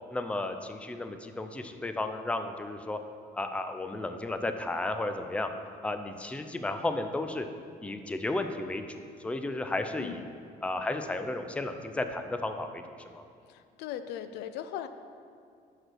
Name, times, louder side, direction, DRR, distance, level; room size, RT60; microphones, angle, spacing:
voice 1, 0.1-3.0 3.3-5.5 5.8-7.5 7.8-10.2 10.6-13.2, left 2 dB, 5° left, 7 dB, 0.4 m, -33 dB
voice 2, 13.5-14.9, left 10 dB, 80° left, 10 dB, 0.4 m, -38 dB
5.9 x 5.2 x 6.2 m, 2.3 s
cardioid pair, 110°, 17 cm